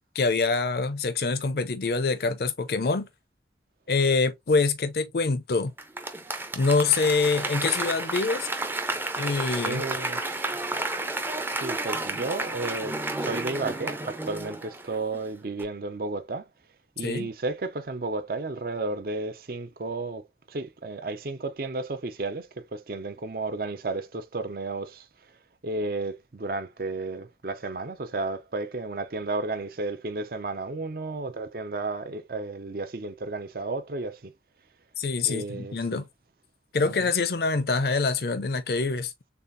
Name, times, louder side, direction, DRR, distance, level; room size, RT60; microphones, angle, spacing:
voice 1, 0.1-3.1 3.9-5.7 6.5-8.5 9.2-9.8 17.0-17.3 35.0-36.1 36.7-39.1, left 4 dB, 60° left, 0.5 m, -25 dB
Applause / Crowd, 5.8-15.2 15.6-15.7, right 2 dB, 10° right, 0.5 m, -31 dB
voice 2, 9.6-10.4 11.6-16.5 17.0-20.2 20.5-25.1 25.6-34.3 35.3-36.0 36.8-37.1, right 3 dB, 55° right, 0.6 m, -33 dB
6.8 x 2.4 x 2.6 m
head